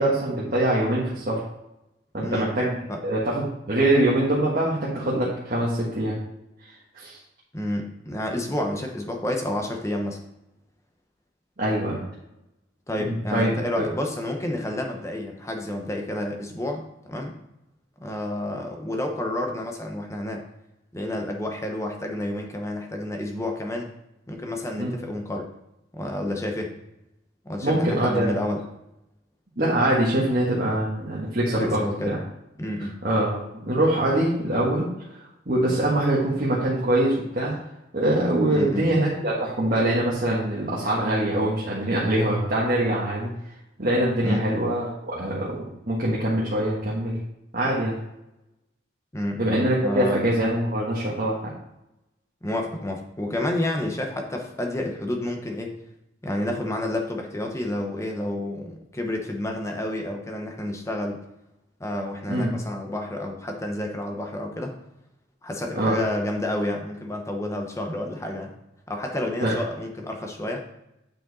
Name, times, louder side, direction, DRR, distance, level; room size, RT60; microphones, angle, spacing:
voice 1, 0.0-1.4 2.1-2.8 3.0-6.2 6.9-7.2 11.6-12.0 13.0-13.5 13.8-13.9 24.8-24.9 27.6-28.3 29.6-32.2 33.0-34.9 35.4-37.5 37.9-43.3 43.8-45.6 45.9-47.2 47.5-48.0 49.4-51.3 62.3-62.5 65.8-66.0 69.4-69.5, right 1 dB, 45° right, -6 dB, 1.5 m, -23 dB
voice 2, 2.2-2.5 2.9-3.0 7.5-10.2 12.9-17.3 18.0-20.4 20.9-23.9 24.3-25.5 25.9-26.8 27.4-28.6 31.6-32.2 32.6-32.9 38.5-38.9 44.2-44.5 49.1-49.5 49.8-50.2 52.4-55.8 56.2-61.2 61.8-64.7 65.4-68.5 68.9-70.6, left 1 dB, 15° left, 3 dB, 0.9 m, -30 dB
8.9 x 5.0 x 4.1 m, 0.88 s
head